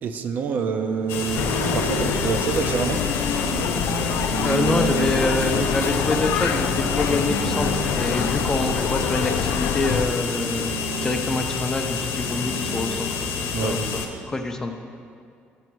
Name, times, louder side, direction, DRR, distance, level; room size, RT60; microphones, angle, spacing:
voice 1, 0.0-3.0 13.5-13.9, right 5 dB, 45° right, 7 dB, 0.4 m, -28 dB
sound 1, 0.5-14.2, right 6 dB, 90° right, 0.7 m, -33 dB
sound 2, 1.1-14.1, left 5 dB, 85° left, 0.8 m, -29 dB
sound 3, 1.3-10.1, left 7 dB, 70° left, 0.4 m, -26 dB
voice 2, 4.4-13.1 13.6-13.8 14.3-14.7, left 2 dB, 15° left, 5 dB, 0.5 m, -26 dB
6.9 x 6.8 x 6.2 m, 2.3 s
cardioid pair, 165°, 4 cm